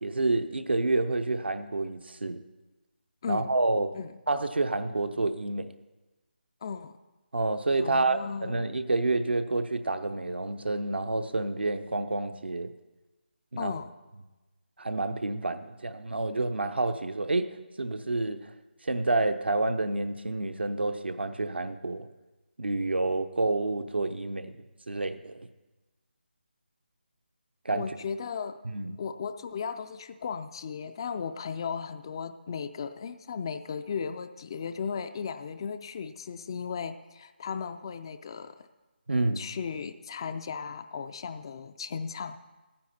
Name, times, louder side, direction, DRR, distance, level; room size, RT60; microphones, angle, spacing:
voice 1, 0.0-2.4 3.3-3.9 4.3-5.7 7.3-12.7 13.5-13.8 14.8-18.4 18.8-22.1 22.6-24.6 24.9-25.5 27.6-27.9 28.6-29.0 39.1-39.4, right 2 dB, 75° right, 9 dB, 0.8 m, -29 dB
voice 2, 6.6-7.0 7.8-8.7 13.6-13.9 27.7-28.6 29.0-38.7 39.4-42.4, left 6 dB, 25° left, 10 dB, 0.3 m, -36 dB
15.0 x 9.7 x 4.2 m, 1.1 s
figure-of-eight pair, 155°, 6 cm